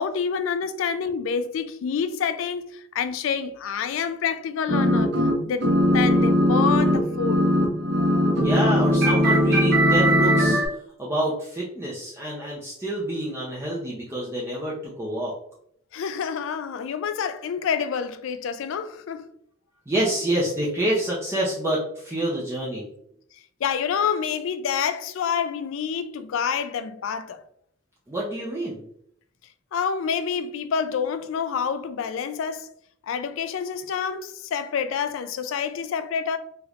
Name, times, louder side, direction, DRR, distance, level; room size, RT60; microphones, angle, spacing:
voice 1, 0.0-5.1 5.4-7.4 15.9-19.3 23.6-27.4 29.7-32.7 33.0-36.4, left 6 dB, 75° left, 0.3 m, -27 dB
sound 1, 4.7-5.3 5.6-10.7, equal, 60° right, 0.8 m, -19 dB
voice 2, 8.4-10.6 11.0-15.3 19.9-22.9 28.1-28.8, right 1 dB, 15° right, 0.5 m, -27 dB
3.3 x 3.0 x 2.4 m
head